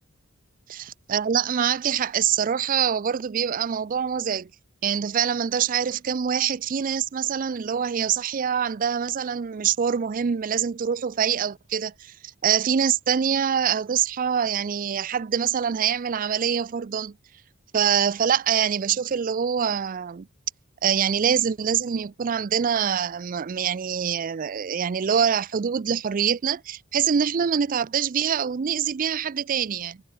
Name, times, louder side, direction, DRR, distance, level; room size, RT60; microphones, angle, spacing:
voice 1, 0.7-4.5 4.8-12.1 12.4-17.1 17.7-20.3 20.8-30.0, right 8 dB, 40° right, 0.4 m, -25 dB
head